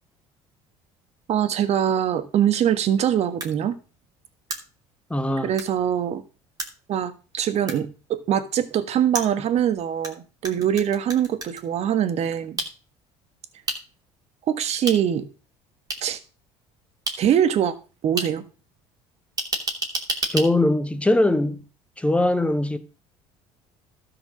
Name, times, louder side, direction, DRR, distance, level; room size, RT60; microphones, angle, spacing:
voice 1, 1.3-3.7 5.4-6.2 6.9-12.6 14.5-15.3 16.0-16.2 17.2-17.7 18.0-18.4, right 9 dB, 55° right, 1.5 m, -23 dB
sound 1, 3.4-3.5 4.5-4.6 5.6-5.7 6.6-6.7 7.7-7.8 9.1-10.1 10.4-11.6 12.6-12.7 13.7-13.8 14.9-15.0 15.9-16.0 17.1-17.2 18.2-18.3 19.4-20.5, right 2 dB, 30° right, 2.9 m, -28 dB
voice 2, 5.1-5.5 20.3-21.7 22.0-22.8, left 1 dB, 10° left, 1.2 m, -21 dB
12.5 x 5.1 x 6.2 m
supercardioid pair, 90°, 13 cm